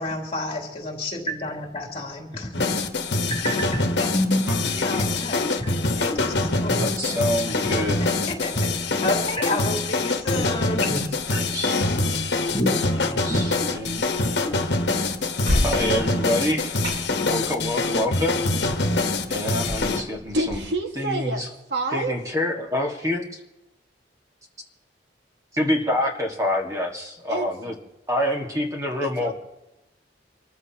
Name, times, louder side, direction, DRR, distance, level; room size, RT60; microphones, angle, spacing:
voice 1, 0.0-2.7 3.3-5.7 6.0-7.6 8.0-11.0 12.5-13.4, left 1 dB, 35° left, 3.1 m, -29 dB
sound 1, 2.5-20.0, left 2 dB, 65° left, 1.3 m, -24 dB
voice 2, 4.5-5.1 6.8-8.0 11.3-11.7 13.0-14.1 15.6-16.7 17.2-18.4 19.3-20.6 21.0-21.5 21.9-23.4 25.5-27.8 28.1-29.3, left 1 dB, 20° right, 1.7 m, -27 dB
sound 2, 14.0-20.6, equal, 90° right, 5.0 m, -34 dB
voice 3, 20.3-21.4 21.7-22.2 27.3-27.5 29.0-29.3, right 2 dB, 70° right, 1.8 m, -27 dB
26.0 x 14.5 x 2.9 m
head